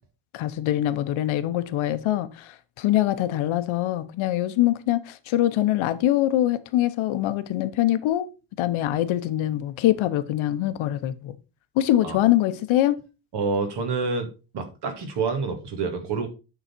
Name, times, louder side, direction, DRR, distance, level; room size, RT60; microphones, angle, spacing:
voice 1, 0.3-8.3 8.6-11.3 11.8-13.0, left 13 dB, 70° left, 0.8 m, -23 dB
voice 2, 13.3-16.3, right 4 dB, 55° right, 1.9 m, -28 dB
9.1 x 4.0 x 4.4 m
cardioid pair, 165°, 49 cm